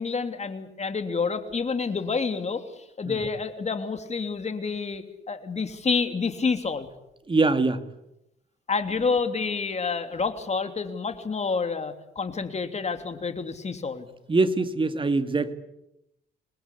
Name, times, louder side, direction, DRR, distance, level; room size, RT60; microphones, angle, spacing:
voice 1, 0.0-6.9 8.7-14.1, left 4 dB, 35° left, 8 dB, 3.1 m, -28 dB
voice 2, 7.3-7.8 14.3-15.5, right 3 dB, 25° right, 10 dB, 2.2 m, -23 dB
27.0 x 20.5 x 8.5 m, 0.85 s
cardioid pair, 90°, 20 cm